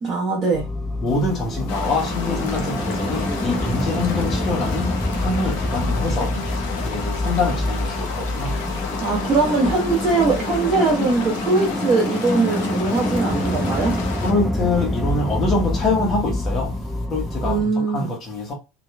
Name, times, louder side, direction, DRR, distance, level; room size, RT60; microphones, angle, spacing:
voice 1, 0.0-0.7 9.0-14.0 17.4-18.1, right 3 dB, 20° right, 1.1 m, -21 dB
sound 1, 0.5-17.7, left 1 dB, 5° left, 0.5 m, -26 dB
voice 2, 1.0-6.4 6.8-8.7 14.2-16.7 17.1-18.5, left 3 dB, 35° left, 1.0 m, -25 dB
sound 2, 1.7-14.3, left 5 dB, 60° left, 0.6 m, -32 dB
2.7 x 2.5 x 2.2 m
figure-of-eight pair, 75°, 0 cm